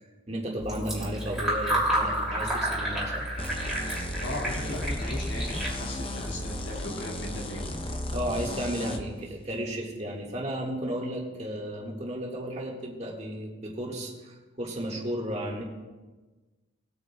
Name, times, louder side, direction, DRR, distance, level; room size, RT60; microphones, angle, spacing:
voice 1, 0.3-3.2 8.1-15.6, equal, 30° right, -2 dB, 1.9 m, -33 dB
Fill (with liquid), 0.6-6.8, right 1 dB, 5° right, 2.8 m, -31 dB
sound 1, 3.4-9.0, left 1 dB, 25° left, 0.7 m, -34 dB
voice 2, 4.2-7.8, left 1 dB, 60° left, -2 dB, 2.3 m, -37 dB
19.5 x 9.2 x 2.4 m, 1.3 s
head